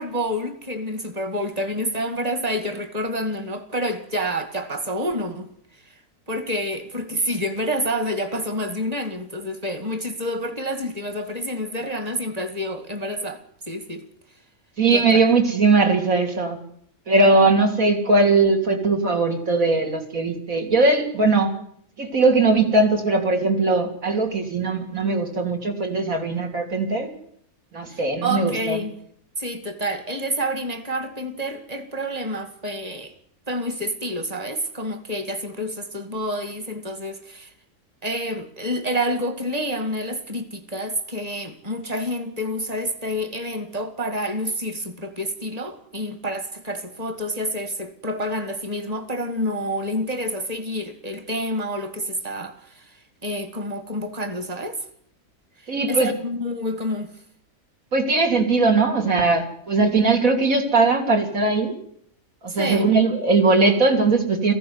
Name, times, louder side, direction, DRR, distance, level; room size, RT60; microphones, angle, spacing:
voice 1, 0.0-5.5 6.3-13.4 13.7-14.1 14.9-15.2 27.9-28.9 29.4-33.1 33.5-37.5 38.0-54.8 55.6-57.1 62.5-62.9, equal, 25° right, 2.1 m, -28 dB
voice 2, 14.8-16.6 17.1-21.5 22.0-27.1 27.7-28.8 55.7-56.1 57.9-61.8 62.4-64.5, right 3 dB, 65° right, 3.4 m, -19 dB
18.0 x 15.5 x 9.6 m
omnidirectional pair, 1.5 m